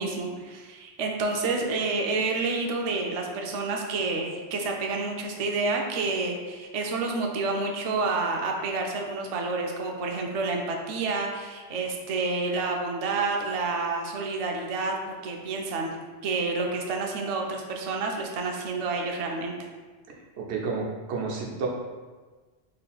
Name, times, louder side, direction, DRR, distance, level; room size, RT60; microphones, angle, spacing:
voice 1, 0.0-16.0 16.2-19.7, right 3 dB, 50° right, 1 dB, 0.4 m, -29 dB
voice 2, 20.4-21.7, right 4 dB, 90° right, -1 dB, 1.0 m, -30 dB
4.3 x 3.3 x 2.3 m, 1.4 s
omnidirectional pair, 1.1 m